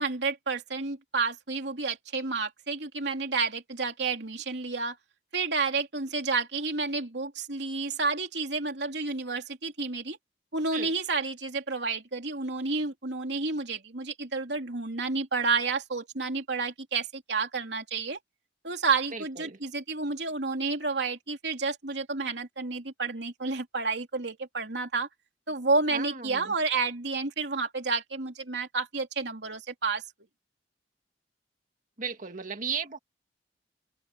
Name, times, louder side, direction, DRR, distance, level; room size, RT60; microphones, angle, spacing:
voice 1, 0.0-5.0 5.3-10.2 10.5-18.2 18.6-25.1 25.5-30.0, right 4 dB, 70° right, 3.3 m, -30 dB
voice 2, 19.1-19.6 25.9-26.5 32.0-33.0, right 5 dB, 50° right, 2.0 m, -35 dB
open air
head